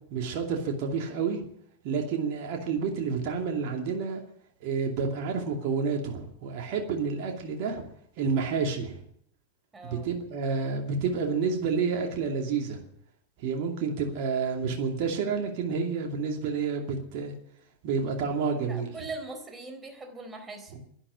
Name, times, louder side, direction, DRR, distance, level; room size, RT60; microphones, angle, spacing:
voice 1, 0.1-1.4 1.8-4.2 4.6-7.9 8.2-9.0 9.8-12.8 13.4-17.3 17.8-19.0, right 5 dB, 50° right, 2 dB, 2.6 m, -29 dB
voice 2, 9.7-10.1 18.6-20.9, right 3 dB, 15° right, 5 dB, 3.9 m, -41 dB
11.5 x 11.5 x 9.9 m, 0.70 s
figure-of-eight pair, 90°, 0 cm